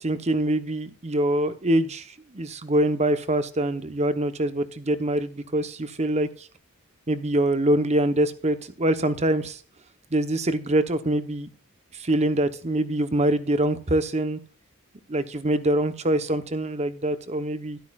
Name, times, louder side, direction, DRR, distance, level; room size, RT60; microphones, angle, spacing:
voice 1, 0.0-6.5 7.1-9.6 10.1-11.5 11.9-14.4 15.1-17.8, right 1 dB, 30° right, 11 dB, 0.9 m, -24 dB
12.5 x 12.0 x 2.4 m, 0.42 s
head